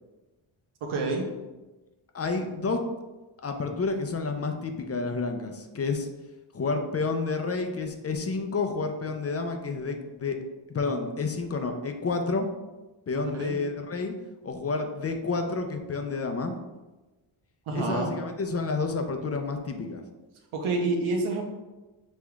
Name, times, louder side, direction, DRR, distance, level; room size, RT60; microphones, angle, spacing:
voice 1, 0.8-1.3 13.1-13.5 17.7-18.1 20.5-21.4, right 3 dB, 90° right, 0 dB, 0.9 m, -28 dB
voice 2, 2.1-2.8 3.4-6.1 6.5-10.4 10.7-12.5 13.1-14.1 14.4-16.5 17.7-20.0, left 4 dB, 35° left, 5 dB, 0.4 m, -30 dB
6.2 x 3.5 x 2.3 m, 1.1 s
wide cardioid pair, 115°, 48 cm